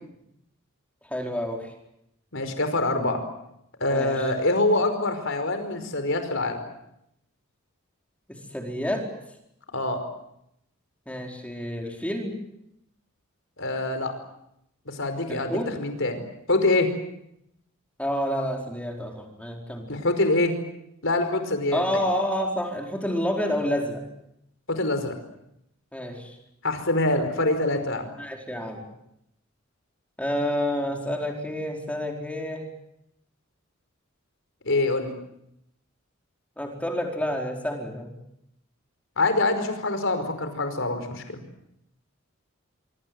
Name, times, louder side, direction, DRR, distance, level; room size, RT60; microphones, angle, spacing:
voice 1, 1.1-1.7 3.9-4.3 8.3-9.1 11.1-12.3 15.3-15.7 18.0-19.9 21.7-24.0 25.9-26.3 28.2-28.8 30.2-32.6 36.6-38.1, equal, 5° left, 1 dB, 4.6 m, -29 dB
voice 2, 2.3-3.2 3.8-6.6 9.7-10.0 13.6-14.1 14.8-16.2 16.5-16.9 19.9-20.5 21.0-22.0 24.7-25.1 26.6-28.1 34.6-35.1 39.2-41.4, left 2 dB, 65° left, 8 dB, 5.1 m, -25 dB
25.5 x 25.0 x 7.9 m, 0.80 s
head